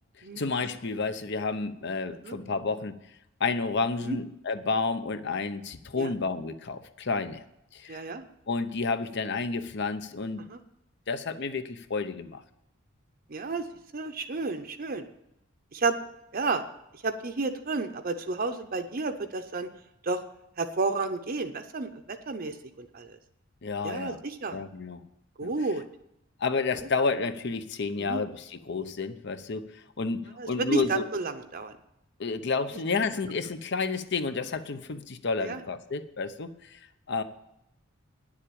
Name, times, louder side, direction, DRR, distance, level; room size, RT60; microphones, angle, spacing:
voice 1, 0.4-3.0 3.4-7.4 7.7-8.0 8.5-10.4 11.1-12.4 23.6-24.2 24.5-25.0 25.4-25.5 26.4-31.0 32.2-36.8 37.1-37.2, left 4 dB, 60° left, 11 dB, 0.8 m, -30 dB
voice 2, 7.9-8.2 10.5-10.6 13.3-13.7 13.9-15.0 15.7-16.0 16.3-16.6 17.0-19.7 20.0-20.2 20.6-23.2 23.8-24.6 25.4-25.8 26.7-26.9 28.0-28.2 30.4-31.7 35.4-35.6, right 3 dB, 45° right, 6 dB, 0.7 m, -31 dB
10.0 x 7.4 x 8.6 m, 0.82 s
head